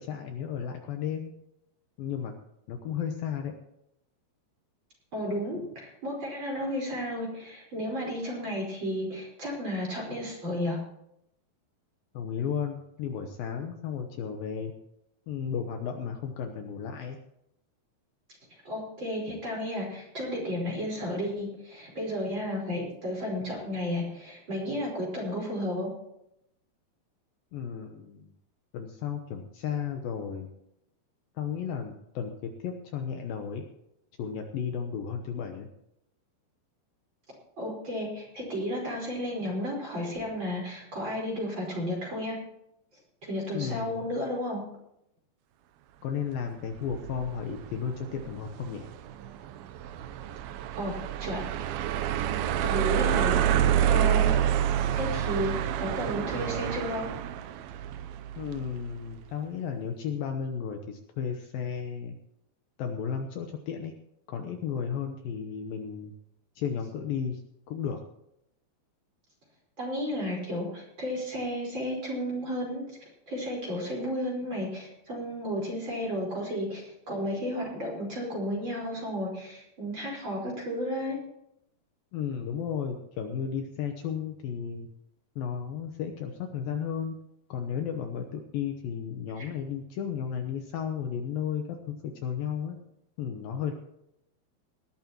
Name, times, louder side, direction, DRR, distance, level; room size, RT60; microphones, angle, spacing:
voice 1, 0.0-1.3 2.0-2.3 2.7-3.6 12.1-14.7 15.3-17.2 27.5-28.3 28.7-30.5 31.4-32.3 32.6-33.7 34.2-35.7 43.5-44.1 46.0-48.9 58.4-62.2 62.8-63.9 64.3-66.1 66.6-67.4 67.7-68.0 82.1-84.9 85.4-87.2 87.5-92.8 93.2-93.7, left 7 dB, 75° left, 4 dB, 2.5 m, -34 dB
voice 2, 5.1-10.8 18.6-25.9 37.6-42.4 43.3-44.6 50.8-51.9 52.6-54.3 54.9-55.5 55.8-57.0 69.8-72.8 73.3-81.2 89.4-89.5, equal, 30° right, -2 dB, 5.1 m, -33 dB
sound 1, 46.8-58.9, right 10 dB, 80° right, 2.4 m, -28 dB
19.5 x 13.0 x 3.0 m, 0.78 s
omnidirectional pair, 4.7 m